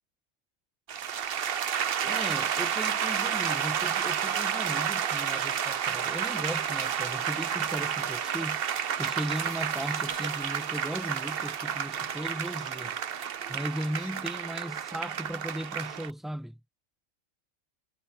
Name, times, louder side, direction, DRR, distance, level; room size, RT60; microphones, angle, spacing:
sound 1, 0.9-16.1, right 8 dB, 55° right, 0.9 m, -31 dB
voice 1, 2.0-13.0 13.5-16.6, equal, ahead, 1.6 m, -37 dB
sound 2, 6.0-14.5, right 4 dB, 25° right, 2.7 m, -49 dB
omnidirectional pair, 1.3 m